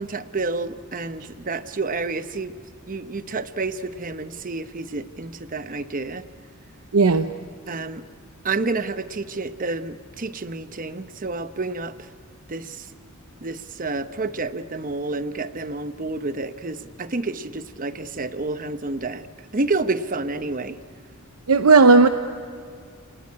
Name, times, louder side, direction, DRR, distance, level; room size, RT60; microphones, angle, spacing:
voice 1, 0.0-2.6 2.9-6.2 7.7-8.0 8.4-12.1 12.5-12.9 13.4-19.3 19.5-20.8, right 3 dB, 40° right, 12 dB, 0.9 m, -29 dB
voice 2, 6.9-7.3 21.5-22.1, right 4 dB, 80° right, 8 dB, 0.8 m, -14 dB
29.5 x 19.5 x 9.7 m, 2.2 s
head